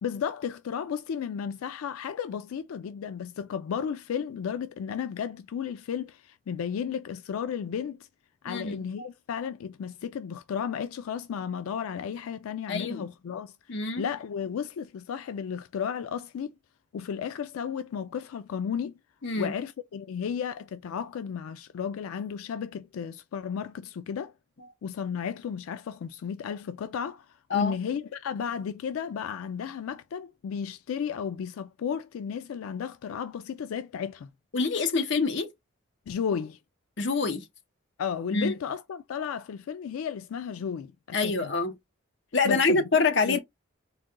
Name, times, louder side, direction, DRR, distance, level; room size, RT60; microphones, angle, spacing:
voice 1, 0.0-8.0 8.4-16.5 16.9-18.9 19.3-24.3 24.8-27.3 27.5-34.3 36.1-36.6 38.0-41.5 42.4-42.8 43.2-43.4, left 7 dB, 90° left, 0.3 m, -33 dB
voice 2, 8.5-9.1 12.7-13.1 13.7-14.1 19.2-19.5 27.5-27.8 34.5-35.5 37.0-37.5 38.3-38.5 41.1-41.7 42.3-43.4, left 4 dB, 55° left, 0.7 m, -26 dB
4.1 x 2.2 x 3.6 m
head